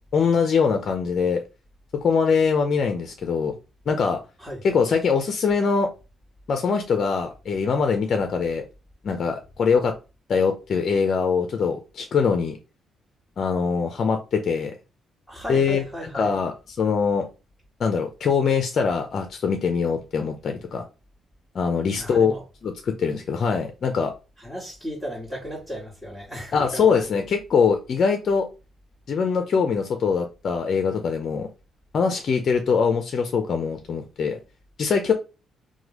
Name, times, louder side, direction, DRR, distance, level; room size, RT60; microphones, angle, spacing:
voice 1, 0.1-1.4 2.0-3.5 3.9-4.2 4.6-5.9 6.5-8.6 9.0-9.9 10.3-12.6 13.4-14.7 15.5-17.3 17.8-20.9 21.5-22.3 22.6-24.1 26.5-28.5 29.1-31.5 31.9-34.4 34.8-35.1, left 5 dB, 55° left, 0.5 m, -23 dB
voice 2, 15.3-16.3 22.0-22.4 24.4-27.3, equal, 5° right, 1.5 m, -35 dB
3.1 x 2.2 x 2.9 m
cardioid pair, 90°, 0 cm